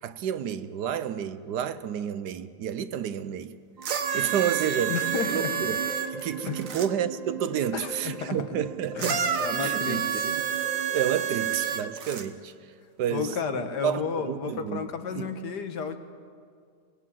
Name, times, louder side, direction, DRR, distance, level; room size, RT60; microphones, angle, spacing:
voice 1, 0.0-3.6 4.1-5.0 5.3-5.8 6.1-9.2 9.5-10.4 10.9-14.9 15.1-15.3, right 9 dB, 75° right, 1.4 m, -30 dB
sound 1, 3.8-11.8, right 5 dB, 30° right, 0.8 m, -39 dB
sound 2, 3.8-6.9 9.0-12.3 13.2-13.3, right 8 dB, 55° right, 1.4 m, -29 dB
voice 2, 4.9-5.5 6.5-6.6 7.7-8.4 9.0-10.3 13.1-16.0, left 6 dB, 75° left, 1.8 m, -32 dB
25.0 x 19.0 x 7.6 m
omnidirectional pair, 1.8 m